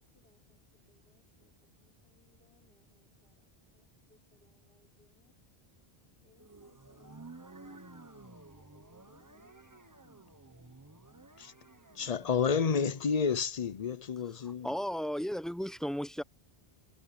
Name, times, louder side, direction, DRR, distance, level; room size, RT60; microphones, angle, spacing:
voice 1, 0.0-5.4 5.7-5.9 6.2-10.1, left 3 dB, 80° left, 4.0 m, -71 dB
sound 1, 6.3-13.1, right 2 dB, 20° right, 1.2 m, -53 dB
voice 2, 11.9-14.7, left 6 dB, 45° left, 0.7 m, -30 dB
voice 3, 14.6-16.2, equal, ahead, 1.0 m, -34 dB
omnidirectional pair, 1.0 m